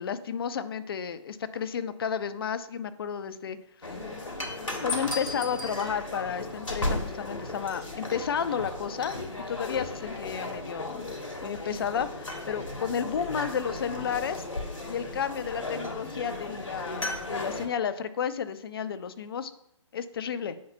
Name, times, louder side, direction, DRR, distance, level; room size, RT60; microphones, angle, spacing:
voice 1, 0.0-3.6 4.8-9.2 9.5-11.1 11.4-14.4 14.9-19.5 19.9-20.6, left 7 dB, 50° left, 12 dB, 0.6 m, -32 dB
sound 1, 3.8-17.7, left 2 dB, 85° left, 1.6 m, -35 dB
9.4 x 5.6 x 2.2 m, 0.75 s
figure-of-eight pair, 140°, 16 cm